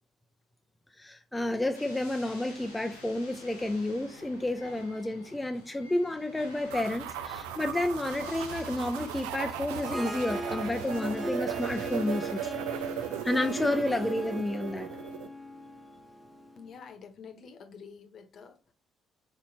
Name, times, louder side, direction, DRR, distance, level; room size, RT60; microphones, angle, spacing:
voice 1, 1.0-12.5 13.2-14.9, left 1 dB, 15° left, 0.5 m, -31 dB
sound 1, 1.7-14.4, left 2 dB, 90° left, 1.0 m, -50 dB
sound 2, 6.7-15.3, right 10 dB, 70° right, 0.4 m, -37 dB
Harp, 9.6-16.7, equal, 20° right, 1.0 m, -39 dB
voice 2, 16.6-18.7, left 6 dB, 50° left, 1.0 m, -48 dB
4.4 x 4.2 x 2.7 m
figure-of-eight pair, 50°, 0 cm